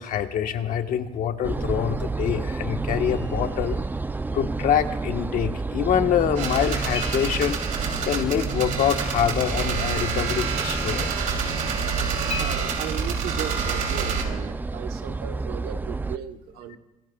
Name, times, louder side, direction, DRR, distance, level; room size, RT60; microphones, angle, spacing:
voice 1, 0.0-3.8 4.3-7.6 8.0-11.1, left 9 dB, 65° left, 6 dB, 1.3 m, -25 dB
sound 1, 1.4-16.2, right 3 dB, 10° right, 0.4 m, -30 dB
sound 2, 3.0-4.3 6.9-8.9 12.3-12.6, left 5 dB, 40° left, 6.2 m, -39 dB
sound 3, 6.4-14.2, right 6 dB, 55° right, 3.1 m, -29 dB
voice 2, 12.3-16.8, right 10 dB, 80° right, 6 dB, 1.2 m, -36 dB
26.5 x 19.5 x 2.4 m, 1.1 s
cardioid pair, 100°, 16 cm